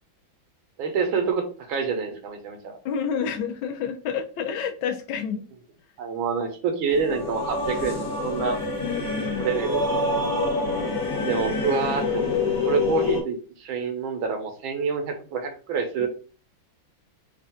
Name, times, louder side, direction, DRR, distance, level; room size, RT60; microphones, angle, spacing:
voice 1, 0.8-2.8 6.0-8.6 9.4-9.8 11.2-12.3 12.7-16.1, right 5 dB, 85° right, 1.8 m, -27 dB
voice 2, 2.8-5.5 8.8-9.5 16.0-16.1, left 7 dB, 85° left, 1.6 m, -29 dB
sound 1, 6.9-13.2, left 3 dB, 70° left, 2.2 m, -26 dB
5.7 x 2.5 x 3.6 m
omnidirectional pair, 2.2 m